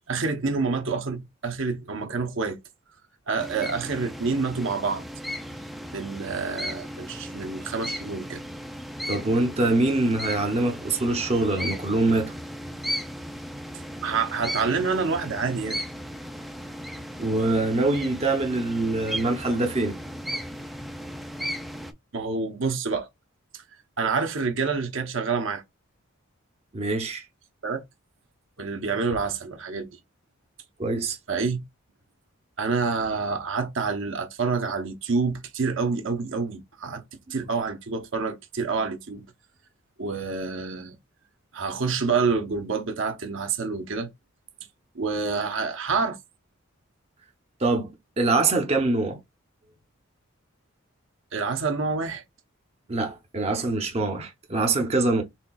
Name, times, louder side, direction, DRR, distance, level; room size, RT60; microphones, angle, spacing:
voice 1, 0.1-2.6 3.3-5.0 5.9-8.4 14.0-15.8 22.1-23.1 23.5-23.6 24.0-25.6 27.6-27.8 28.6-29.9 31.3-31.6 32.6-37.0 37.3-39.3 40.0-41.0 41.5-44.1 44.9-46.2 51.3-52.2, right 4 dB, 60° right, 0.8 m, -27 dB
sound 1, 3.4-21.9, equal, ahead, 0.4 m, -36 dB
voice 2, 9.1-12.3 17.2-20.0 26.7-27.2 30.8-31.2 47.6-49.2 52.9-55.2, right 2 dB, 30° right, 0.7 m, -24 dB
4.3 x 4.0 x 2.3 m
head